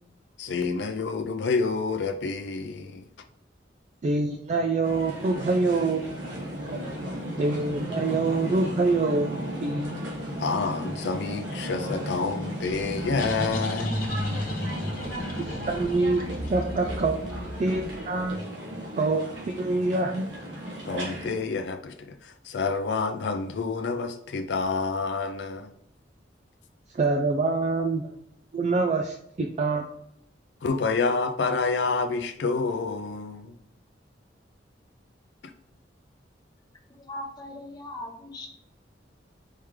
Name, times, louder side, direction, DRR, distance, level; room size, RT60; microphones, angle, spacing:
voice 1, 0.4-3.0 4.3-4.4 10.4-14.0 20.9-25.7 30.6-33.5, left 4 dB, 70° left, 6 dB, 0.4 m, -28 dB
voice 2, 4.0-6.1 7.4-9.3 9.6-10.0 15.4-18.4 19.0-20.3 26.9-28.1 28.5-29.9, right 3 dB, 40° right, 3 dB, 0.3 m, -26 dB
sound 1, 4.8-21.4, equal, 80° right, 1.3 m, -35 dB
sound 2, 13.0-18.2, left 1 dB, 50° left, 1.2 m, -33 dB
voice 3, 37.0-38.6, left 1 dB, 20° left, 1 dB, 0.8 m, -39 dB
4.5 x 3.2 x 3.6 m, 0.72 s
head